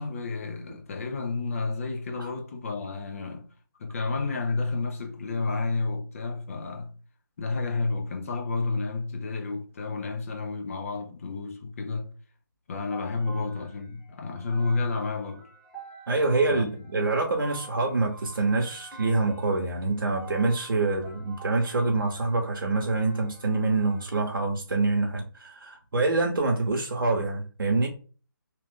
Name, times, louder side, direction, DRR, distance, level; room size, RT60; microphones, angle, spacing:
voice 1, 0.0-3.5 3.8-7.0 7.4-12.1 12.7-15.5 16.5-16.7, left 3 dB, 40° left, 0.7 m, -31 dB
sound 1, 12.9-24.2, right 3 dB, ahead, 1.1 m, -48 dB
voice 2, 16.1-27.9, right 3 dB, 70° right, 0.8 m, -26 dB
2.8 x 2.4 x 3.6 m
figure-of-eight pair, 155°, 12 cm